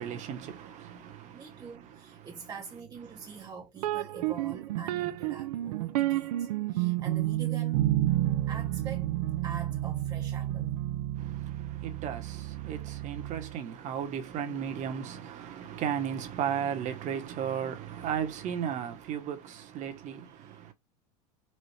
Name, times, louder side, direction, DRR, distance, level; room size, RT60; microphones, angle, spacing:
voice 1, 0.0-2.3 3.1-3.5 11.1-20.7, right 8 dB, 40° right, 1.1 m, -35 dB
voice 2, 1.3-7.8 8.5-9.1 9.4-10.8 20.3-20.4, right 5 dB, 20° right, 0.8 m, -45 dB
sound 1, 3.8-13.6, right 14 dB, 80° right, 0.5 m, -30 dB
4.3 x 2.5 x 3.2 m
supercardioid pair, 120°, 20 cm